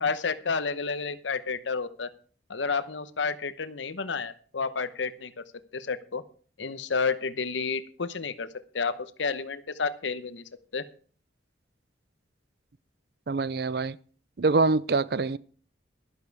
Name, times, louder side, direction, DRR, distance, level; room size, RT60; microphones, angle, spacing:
voice 1, 0.0-2.1 2.5-5.3 5.7-6.2 6.6-8.5 8.7-10.4 10.7-10.8, left 5 dB, 85° left, 0.9 m, -30 dB
voice 2, 13.3-14.0 14.4-15.4, right 3 dB, 55° right, 0.5 m, -25 dB
12.0 x 11.5 x 4.7 m
head